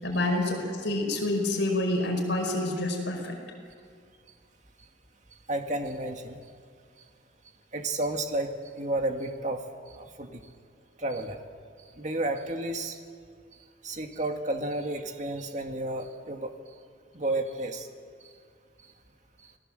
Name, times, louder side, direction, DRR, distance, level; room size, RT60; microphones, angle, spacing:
voice 1, 0.0-3.4, left 1 dB, 65° left, 2 dB, 5.4 m, -28 dB
voice 2, 5.5-6.4 7.7-9.6 9.9-10.4 11.0-11.4 12.0-13.0 13.8-16.5 17.1-17.9, right 1 dB, 40° right, 4 dB, 1.9 m, -31 dB
29.0 x 19.5 x 7.8 m, 2.2 s
head